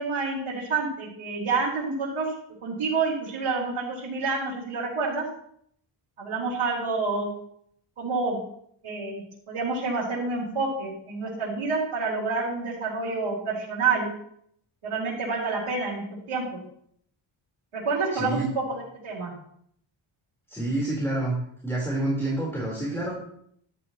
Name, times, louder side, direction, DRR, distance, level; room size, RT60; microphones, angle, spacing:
voice 1, 0.0-2.3 2.6-5.2 6.2-7.3 8.0-8.4 8.8-14.1 14.8-16.4 17.7-19.3, right 4 dB, 90° right, -7 dB, 4.1 m, -28 dB
voice 2, 18.1-18.5 20.5-21.4 21.6-23.1, right 1 dB, 5° left, -5 dB, 4.1 m, -28 dB
13.0 x 13.0 x 3.1 m, 0.67 s
wide cardioid pair, 105°, 49 cm